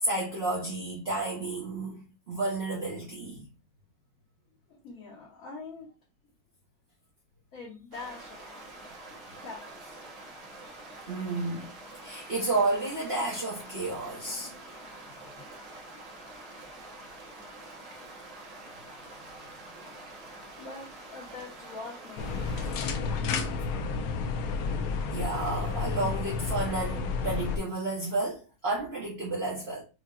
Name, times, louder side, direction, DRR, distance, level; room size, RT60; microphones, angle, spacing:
voice 1, 0.0-3.4 11.1-11.7 12.0-14.5 25.1-29.8, right 2 dB, 45° right, 0.9 m, -31 dB
voice 2, 4.7-5.9 7.5-9.0 9.4-10.0 11.9-12.3 13.8-14.7 20.6-22.5 22.8-23.2, left 3 dB, 55° left, 1.4 m, -45 dB
sound 1, 7.9-22.8, right 2 dB, 80° right, 1.7 m, -46 dB
sound 2, 22.2-27.6, left 4 dB, 70° left, 0.8 m, -31 dB
4.7 x 2.7 x 2.4 m
omnidirectional pair, 1.9 m